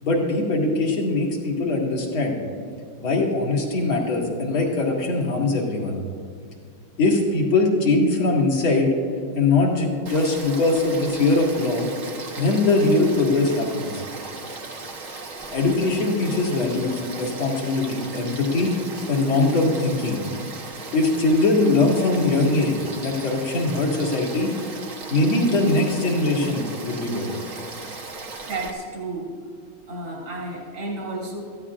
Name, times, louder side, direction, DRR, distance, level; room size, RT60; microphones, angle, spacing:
voice 1, 0.0-2.4 3.0-6.0 7.0-8.9 9.3-11.9 12.4-14.0 15.5-18.7 19.1-20.2 20.9-24.5 25.1-27.4, left 2 dB, 75° left, -2 dB, 2.9 m, -21 dB
Frog / Stream, 10.1-28.7, right 3 dB, 50° right, 1.3 m, -37 dB
voice 2, 28.1-29.4 29.9-31.4, right 2 dB, 65° right, -3 dB, 3.1 m, -32 dB
23.0 x 14.5 x 2.5 m, 2.2 s
omnidirectional pair, 2.2 m